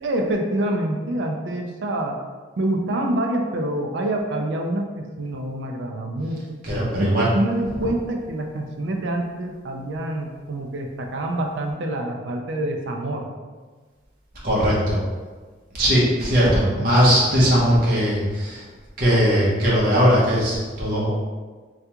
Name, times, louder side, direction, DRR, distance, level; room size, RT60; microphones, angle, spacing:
voice 1, 0.0-2.2 2.6-6.6 6.9-13.3, right 1 dB, 80° right, 2 dB, 0.4 m, -26 dB
voice 2, 6.6-7.3 7.8-7.9 14.4-15.0 15.7-18.6 19.0-21.1, equal, 50° right, -7 dB, 0.8 m, -19 dB
3.4 x 2.3 x 2.8 m, 1.4 s
head